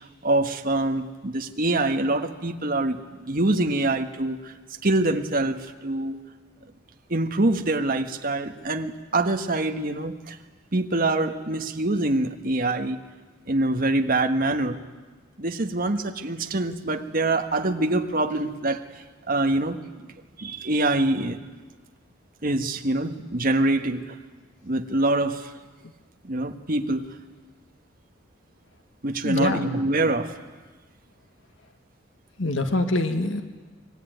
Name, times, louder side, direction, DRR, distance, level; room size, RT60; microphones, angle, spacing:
voice 1, 0.2-4.5 4.8-6.2 7.1-10.4 10.7-13.0 13.5-14.8 15.4-18.8 19.3-20.1 20.4-21.4 22.4-24.1 24.6-25.5 26.2-27.1 29.0-30.3, right 2 dB, 45° right, 6 dB, 1.5 m, -25 dB
voice 2, 29.2-29.8 32.4-33.4, left 2 dB, 75° left, 7 dB, 1.9 m, -25 dB
25.5 x 22.0 x 9.3 m, 1.4 s
head